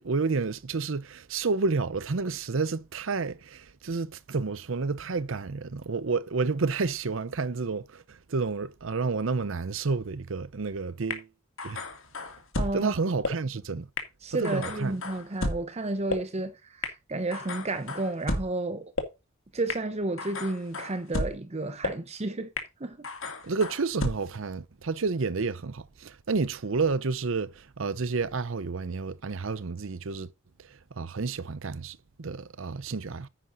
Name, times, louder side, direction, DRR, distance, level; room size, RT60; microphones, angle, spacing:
voice 1, 0.0-11.3 11.6-11.8 12.7-13.9 14.3-15.0 23.4-30.3 30.6-33.3, right 4 dB, 65° right, 0.7 m, -30 dB
sound 1, 11.1-11.2 11.6-12.7 13.2-13.3 14.0-14.1 14.4-15.6 16.1-16.2 16.8-16.9 17.3-18.4 19.0-19.1 19.7-19.8 20.2-21.3 21.8-21.9 22.6-22.7 23.0-24.1, left 2 dB, 65° left, 2.3 m, -32 dB
voice 2, 12.5-12.9 14.2-18.9 19.5-22.5 22.8-23.0, right 2 dB, 30° right, 0.7 m, -32 dB
9.9 x 9.7 x 2.6 m
head